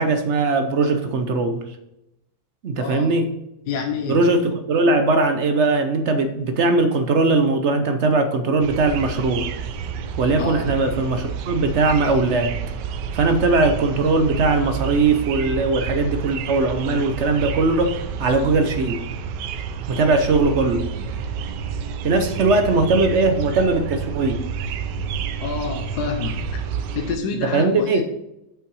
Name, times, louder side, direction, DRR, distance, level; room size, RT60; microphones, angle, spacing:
voice 1, 0.0-1.6 2.6-3.3 4.1-9.5 10.2-12.6 13.1-19.0 19.9-20.9 21.5-21.6 22.0-24.4 27.5-28.0, right 3 dB, 60° right, 8 dB, 0.8 m, -20 dB
voice 2, 2.8-3.2 3.7-4.2 10.4-10.7 25.4-26.6 26.9-28.0, left 5 dB, 70° left, 4 dB, 1.3 m, -28 dB
sound 1, 8.6-27.2, right 6 dB, 75° right, 1.3 m, -29 dB
7.4 x 5.8 x 4.7 m, 0.87 s
omnidirectional pair, 1.9 m